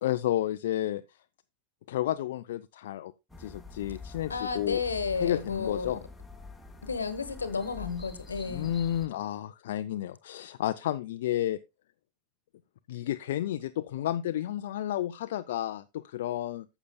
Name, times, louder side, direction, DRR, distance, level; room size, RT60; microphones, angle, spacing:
voice 1, 0.0-1.0 1.9-3.1 3.4-4.8 5.2-6.0 8.5-11.6 12.9-16.7, left 12 dB, 65° left, 0.4 m, -31 dB
sound 1, 3.3-9.1, left 4 dB, 5° left, 1.4 m, -46 dB
voice 2, 4.3-6.0 6.8-8.8, left 5 dB, 85° left, 1.1 m, -32 dB
14.5 x 7.0 x 2.2 m
figure-of-eight pair, 85°, 0 cm